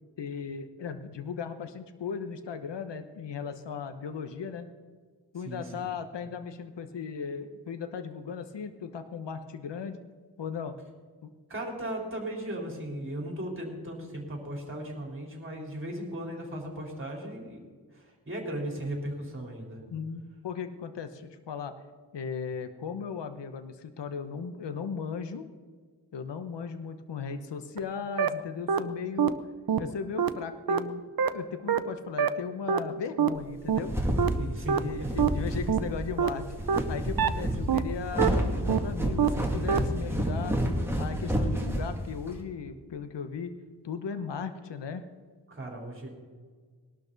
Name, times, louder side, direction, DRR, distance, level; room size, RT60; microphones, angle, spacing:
voice 1, 0.2-4.7 5.3-10.0 10.4-10.8 11.2-11.3 19.9-21.7 22.1-25.5 26.1-29.4 29.8-33.9 34.8-36.5 36.9-40.6 41.0-43.5 43.8-45.0, left 6 dB, 75° left, 9 dB, 1.0 m, -37 dB
voice 2, 5.4-5.9 11.5-17.6 17.9-19.8 34.4-35.1 37.2-37.5 45.5-46.1, right 1 dB, 30° right, 0 dB, 3.9 m, -37 dB
sound 1, 27.8-27.9 28.2-28.3 28.7-28.8 29.2-29.3 29.7-29.8 30.2-30.3 30.7-30.8 31.2-31.3 31.7-31.8 32.2-32.3 32.7-32.8 33.2-33.3 33.7-33.8 34.2-34.3 34.7-34.8 35.2-35.3 35.7-35.8 36.2-36.3 36.7-36.8 37.2-37.3 37.7-37.8 38.2-38.3 38.7-38.8 39.2-39.3 39.7-39.8, right 8 dB, 55° right, 0.8 m, -24 dB
sound 2, 33.5-42.4, equal, 5° right, 2.3 m, -29 dB
20.0 x 12.0 x 4.0 m, 1.5 s
wide cardioid pair, 110°, 43 cm